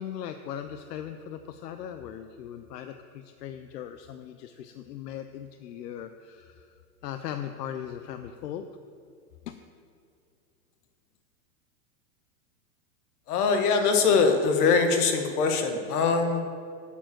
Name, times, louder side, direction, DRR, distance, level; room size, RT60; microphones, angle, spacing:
voice 1, 0.0-6.7 7.0-8.7 9.5-9.6, left 9 dB, 85° left, 8 dB, 0.8 m, -39 dB
voice 2, 13.3-16.4, left 4 dB, 70° left, 5 dB, 1.8 m, -22 dB
9.2 x 7.2 x 7.9 m, 2.2 s
supercardioid pair, 150°, 47 cm